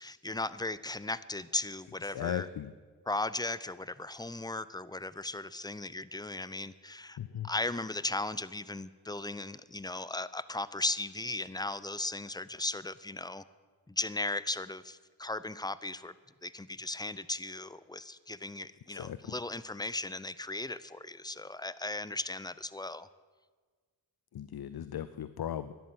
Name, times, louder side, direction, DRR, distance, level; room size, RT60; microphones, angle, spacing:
voice 1, 0.0-2.5 3.1-7.2 7.4-13.4 13.9-16.1 16.4-23.1, left 2 dB, 10° left, 17 dB, 0.6 m, -37 dB
voice 2, 2.0-2.7 7.2-7.5 18.9-19.3 24.3-25.7, left 10 dB, 60° left, 14 dB, 0.7 m, -37 dB
12.5 x 11.0 x 8.0 m, 1.5 s
cardioid pair, 45°, 44 cm